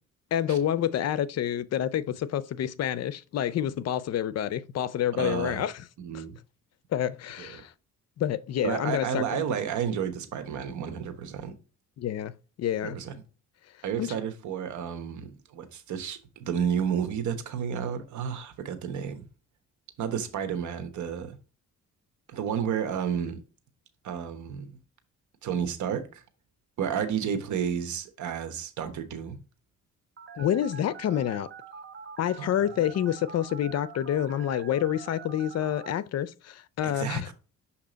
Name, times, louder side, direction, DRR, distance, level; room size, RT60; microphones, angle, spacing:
voice 1, 0.3-5.7 6.1-6.2 6.9-7.7 8.2-9.2 12.0-12.3 12.6-13.0 14.0-14.1 30.4-31.5 32.2-37.3, left 10 dB, 55° left, 0.5 m, -28 dB
voice 2, 5.2-5.6 6.0-6.4 7.4-7.6 8.6-11.5 12.8-13.2 13.8-19.3 20.0-21.4 22.3-23.4 24.0-24.8 25.4-26.2 26.8-29.4 32.4-32.5 36.8-37.3, right 8 dB, 75° right, 1.1 m, -31 dB
Telephone, 30.2-35.9, right 6 dB, 40° right, 0.9 m, -45 dB
6.6 x 2.8 x 5.1 m
cardioid pair, 90°, 30 cm